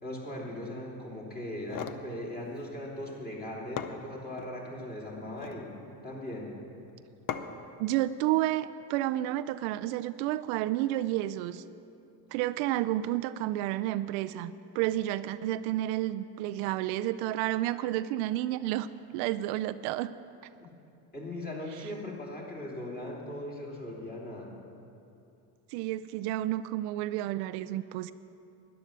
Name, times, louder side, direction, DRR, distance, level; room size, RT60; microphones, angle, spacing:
voice 1, 0.0-5.7 6.0-6.5 20.6-20.7 21.1-24.5, left 1 dB, 20° left, -3 dB, 3.1 m, -39 dB
sound 1, 1.5-2.1 3.3-3.4 3.8-4.5 5.2-5.7 7.3-7.7, left 8 dB, 45° left, 0.7 m, -38 dB
voice 2, 7.8-11.6 12.3-18.9 19.1-20.1 25.7-28.1, right 14 dB, 75° right, 12 dB, 0.5 m, -30 dB
12.5 x 10.5 x 6.7 m, 2.7 s
supercardioid pair, 115°, 47 cm